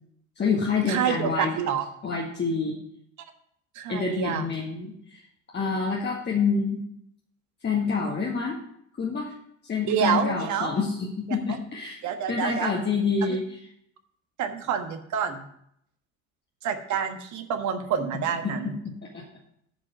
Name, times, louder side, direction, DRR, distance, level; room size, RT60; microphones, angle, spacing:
voice 1, 0.4-1.6 2.0-2.8 3.9-5.2 5.5-6.8 7.6-8.6 9.0-9.3 9.7-12.0 12.3-13.6 18.4-19.2, left 4 dB, 25° left, -2 dB, 1.8 m, -27 dB
voice 2, 0.9-1.8 3.7-4.5 9.9-10.7 12.0-12.7 14.4-15.4 16.6-18.7, right 8 dB, 45° right, 8 dB, 1.4 m, -27 dB
10.0 x 4.9 x 6.9 m, 0.69 s
figure-of-eight pair, 65°, 39 cm